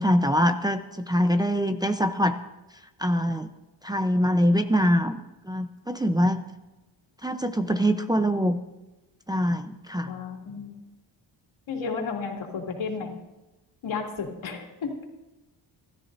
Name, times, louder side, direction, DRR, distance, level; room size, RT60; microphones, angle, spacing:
voice 1, 0.0-2.4 3.0-3.5 3.8-6.4 7.2-8.6 9.3-10.1, equal, 10° right, 6 dB, 0.7 m, -24 dB
voice 2, 10.1-10.8 11.7-13.1 13.8-14.9, left 5 dB, 75° left, 0 dB, 2.9 m, -32 dB
27.5 x 13.0 x 2.7 m, 1.1 s
cardioid pair, 90°, 47 cm